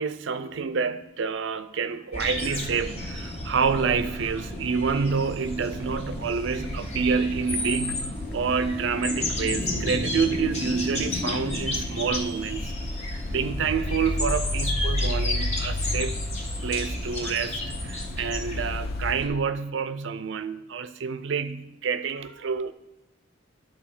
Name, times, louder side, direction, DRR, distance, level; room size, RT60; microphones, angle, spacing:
voice 1, 0.0-12.7 13.3-16.2 16.6-22.7, right 5 dB, 65° right, 0.5 m, -28 dB
sound 1, 2.1-19.3, left 1 dB, 35° left, 1.5 m, -32 dB
sound 2, 5.2-5.4 5.7-6.4 6.7-6.8 7.4-8.3 10.5-19.1, left 2 dB, 50° left, 0.5 m, -32 dB
11.0 x 4.0 x 6.0 m
head